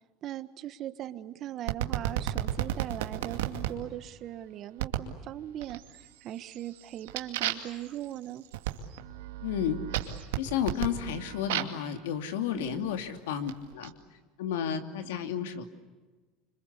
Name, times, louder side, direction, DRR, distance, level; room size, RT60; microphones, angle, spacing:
voice 1, 0.2-8.5 12.5-13.0, right 12 dB, 45° right, 13 dB, 1.4 m, -40 dB
sound 1, 1.7-3.7 4.8-5.1 5.6-6.1 6.5-11.9 12.7-13.9, right 12 dB, 90° right, 2.3 m, -34 dB
voice 2, 9.4-9.8 10.3-13.9 14.4-15.6, left 9 dB, 85° left, 8 dB, 2.7 m, -32 dB
26.5 x 26.0 x 8.3 m, 1.3 s
supercardioid pair, 110°, 0 cm